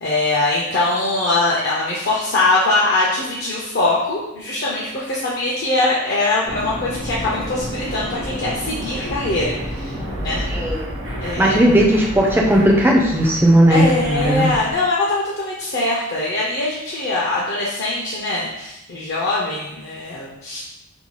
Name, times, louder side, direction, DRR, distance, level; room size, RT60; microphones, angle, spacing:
voice 1, 0.0-10.4 11.2-11.7 13.7-20.6, left 2 dB, 50° left, -6 dB, 0.5 m, -22 dB
sound 1, 6.4-14.7, equal, 75° right, 0.9 m, -30 dB
voice 2, 10.5-10.9 11.4-14.5, right 1 dB, 10° right, 0 dB, 0.3 m, -16 dB
2.7 x 2.2 x 3.0 m, 0.89 s
head